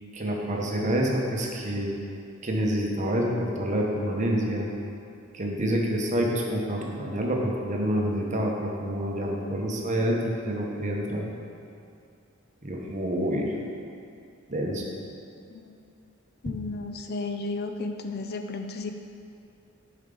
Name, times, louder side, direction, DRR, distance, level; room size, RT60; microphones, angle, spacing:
voice 1, 0.1-1.9 2.4-4.7 5.3-11.3 12.6-13.5 14.5-14.8, equal, 35° right, -1 dB, 0.9 m, -27 dB
voice 2, 16.4-18.9, left 3 dB, 50° left, 6 dB, 0.4 m, -33 dB
10.0 x 4.6 x 3.8 m, 2.5 s
head